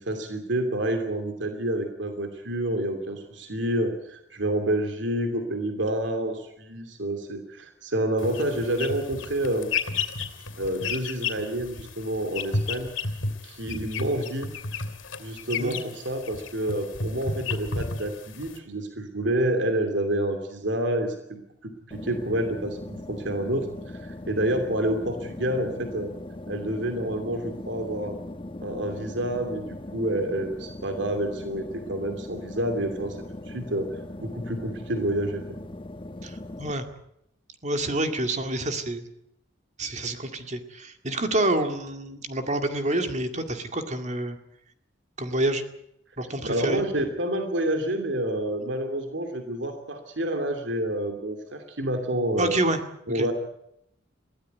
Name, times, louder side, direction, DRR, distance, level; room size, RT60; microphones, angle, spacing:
voice 1, 0.0-9.7 10.6-12.9 13.4-14.5 15.2-21.4 21.9-26.1 26.5-28.2 28.6-35.4 46.4-52.6 53.1-53.3, right 1 dB, 65° right, 6 dB, 2.8 m, -28 dB
sound 1, 8.2-18.6, left 4 dB, 85° left, 3.0 m, -33 dB
sound 2, 21.9-36.7, left 1 dB, 25° left, 1.2 m, -39 dB
voice 2, 36.2-36.8 37.6-39.0 39.8-44.4 45.2-45.6 46.2-46.8 52.4-52.8 53.1-53.3, right 1 dB, 35° right, 6 dB, 2.1 m, -28 dB
22.5 x 16.0 x 9.4 m, 0.77 s
head